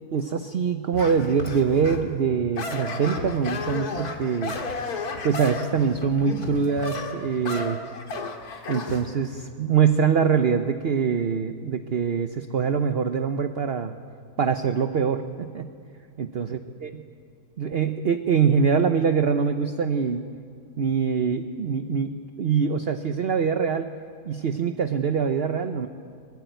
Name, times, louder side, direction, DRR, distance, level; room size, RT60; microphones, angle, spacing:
voice 1, 0.1-4.6 5.2-7.8 8.7-14.0 14.4-15.7 16.2-16.9 17.6-20.2 20.8-23.9 24.3-25.9, right 6 dB, 45° right, 8 dB, 0.9 m, -24 dB
sound 1, 0.9-2.1 2.6-9.0, left 3 dB, 65° left, 2.3 m, -33 dB
23.0 x 21.0 x 9.2 m, 2.3 s
omnidirectional pair, 1.7 m